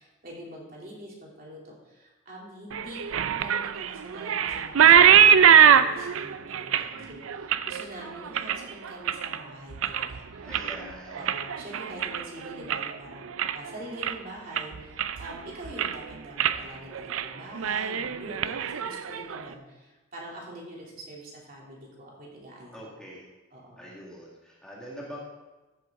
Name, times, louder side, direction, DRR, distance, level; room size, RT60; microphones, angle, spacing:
voice 1, 0.0-3.0 3.4-10.5 10.8-22.9 23.5-23.8, right 1 dB, 45° right, -3 dB, 3.0 m, -44 dB
sound 1, 2.7-9.4 9.7-10.2 10.5-13.0 13.3-13.7 14.0-14.1 14.6-15.4 15.6-16.0 16.4-16.6 16.9-17.3 17.5-19.4, right 8 dB, 75° right, 0.5 m, -22 dB
voice 2, 6.7-7.1 10.4-11.5 18.3-18.6 22.7-23.3 23.8-25.2, equal, 5° left, -5 dB, 1.9 m, -44 dB
14.5 x 7.7 x 3.7 m, 1.1 s
head